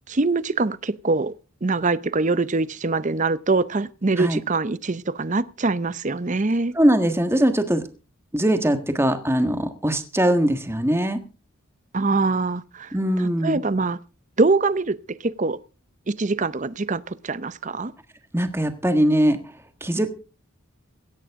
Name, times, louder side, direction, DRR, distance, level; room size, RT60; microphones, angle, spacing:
voice 1, 0.1-1.3 1.6-6.7 11.9-14.0 14.4-15.6 16.1-17.9, right 3 dB, 35° right, 0.6 m, -24 dB
voice 2, 6.7-7.8 8.3-11.2 12.9-13.6 18.3-19.4 19.8-20.1, right 1 dB, 10° right, 1.6 m, -21 dB
17.0 x 14.0 x 3.7 m
head